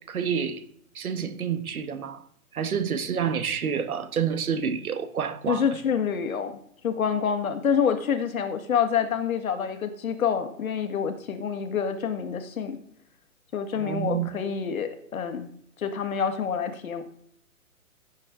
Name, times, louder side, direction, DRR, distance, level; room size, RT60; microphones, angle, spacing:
voice 1, 0.1-0.6 0.9-2.2 2.5-5.6 13.7-14.3, right 7 dB, 80° right, 1.5 m, -28 dB
voice 2, 5.5-6.6 6.8-12.8 13.5-15.5 15.8-17.0, left 7 dB, 70° left, 1.8 m, -27 dB
15.5 x 7.5 x 3.7 m
hypercardioid pair, 155°, 44 cm